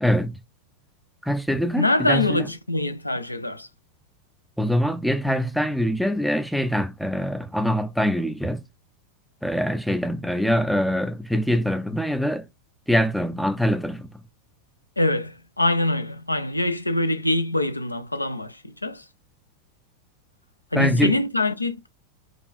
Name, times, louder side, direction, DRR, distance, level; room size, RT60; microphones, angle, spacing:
voice 1, 0.0-0.4 1.2-2.5 4.6-8.6 9.4-12.5 12.9-14.1 20.7-21.1, equal, ahead, 0.4 m, -24 dB
voice 2, 1.8-3.7 15.0-19.1 20.7-21.9, left 2 dB, 85° left, 0.5 m, -24 dB
4.9 x 2.3 x 2.5 m
figure-of-eight pair, 90°, 0 cm